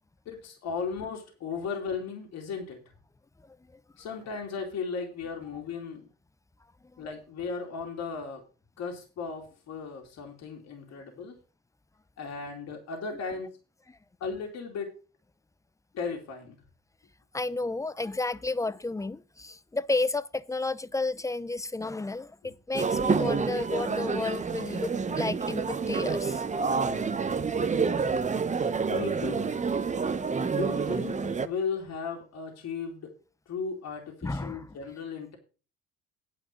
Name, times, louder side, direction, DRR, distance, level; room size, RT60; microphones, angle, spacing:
voice 1, 0.2-2.8 4.0-6.1 7.0-8.4 8.8-11.4 12.2-13.5 14.2-14.9 15.9-16.6 23.2-23.3 28.9-29.6 30.5-33.1 33.5-35.4, left 5 dB, 60° left, 2.8 m, -36 dB
voice 2, 17.3-26.4 34.2-34.8, left 2 dB, 10° left, 0.7 m, -32 dB
sound 1, 22.7-31.5, right 5 dB, 25° right, 1.0 m, -28 dB
9.4 x 5.8 x 7.6 m
supercardioid pair, 80°, 30 cm